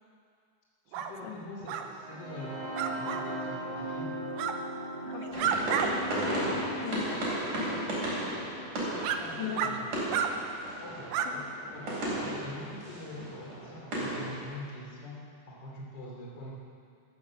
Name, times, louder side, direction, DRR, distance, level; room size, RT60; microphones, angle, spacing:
voice 1, 0.9-4.4 9.2-10.0 10.8-16.5, left 1 dB, 35° left, -3 dB, 3.2 m, -44 dB
sound 1, 0.9-1.1 1.7-1.9 2.7-3.2 4.3-4.6 5.1-5.9 6.3-6.4 7.2-7.4 8.2-8.3 9.0-9.2 9.6-9.7 10.1-10.3 11.1-11.3, right 9 dB, 90° right, 2.3 m, -31 dB
sound 2, 1.8-9.7, right 1 dB, 20° right, 1.3 m, -39 dB
voice 2, 5.1-8.1 9.4-9.8 11.3-11.5, left 8 dB, 80° left, 6 dB, 2.4 m, -42 dB
sound 3, 5.3-14.4, right 1 dB, 70° right, 5.5 m, -35 dB
13.0 x 13.0 x 7.3 m, 2.2 s
omnidirectional pair, 3.5 m